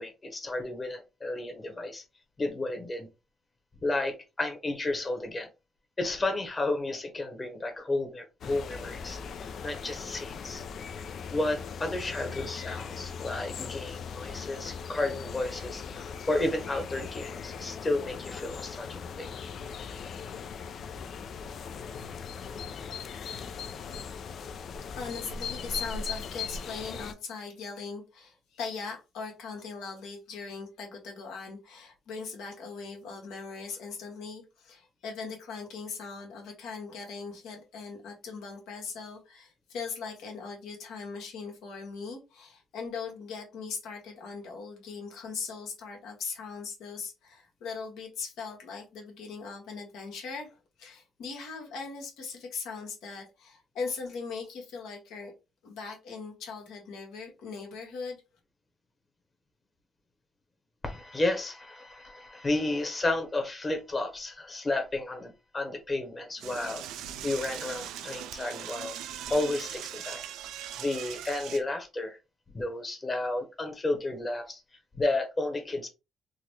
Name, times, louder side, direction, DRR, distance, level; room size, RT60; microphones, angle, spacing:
voice 1, 0.0-2.0 2.4-3.1 3.8-5.5 6.0-9.2 9.6-10.6 10.9-11.0 11.3-19.7 60.8-69.0 69.3-70.2 70.8-72.2 72.5-74.6 75.0-75.9, left 2 dB, 30° left, 1.1 m, -32 dB
sound 1, 8.4-27.1, left 6 dB, 65° left, 0.4 m, -39 dB
voice 2, 25.0-55.3 55.6-58.2, left 5 dB, 85° left, 1.3 m, -40 dB
Door / Toilet flush, 66.4-71.6, right 10 dB, 85° right, 0.3 m, -40 dB
3.8 x 2.2 x 3.1 m
cardioid pair, 75°, 0 cm